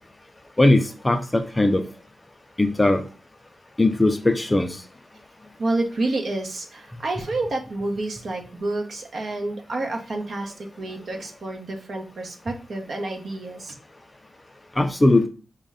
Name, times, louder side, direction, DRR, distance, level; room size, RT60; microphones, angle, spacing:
voice 1, 0.6-1.8 2.6-3.0 3.8-4.8 14.8-15.3, left 2 dB, 15° left, 8 dB, 0.4 m, -19 dB
voice 2, 5.6-13.7, right 2 dB, 60° right, 2 dB, 0.8 m, -29 dB
5.0 x 2.2 x 3.5 m, 0.37 s
wide cardioid pair, 110°, 0 cm